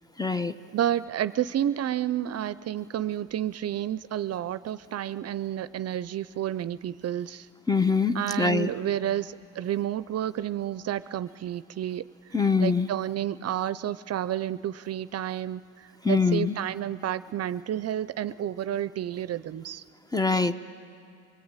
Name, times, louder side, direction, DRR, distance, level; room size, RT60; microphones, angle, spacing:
voice 1, 0.2-0.5 7.7-8.7 12.3-12.9 16.0-16.5 20.1-20.5, left 4 dB, 15° left, 11 dB, 0.8 m, -23 dB
voice 2, 0.7-7.5 8.1-12.0 12.6-19.8, right 11 dB, 55° right, 15 dB, 0.5 m, -30 dB
24.0 x 20.5 x 8.9 m, 2.4 s
cardioid pair, 90°, 30 cm